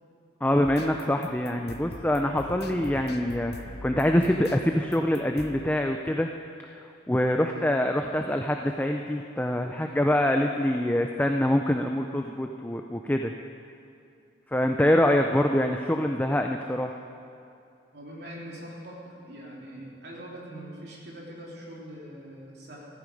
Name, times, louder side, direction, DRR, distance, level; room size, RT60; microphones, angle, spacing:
voice 1, 0.4-6.3 6.7-13.3 14.5-17.0, left 1 dB, 10° left, 4 dB, 0.4 m, -25 dB
sound 1, 0.6-5.8, left 2 dB, 60° left, 0.8 m, -43 dB
voice 2, 17.9-22.9, equal, 60° right, -4 dB, 3.3 m, -42 dB
14.5 x 14.0 x 5.3 m, 2.5 s
head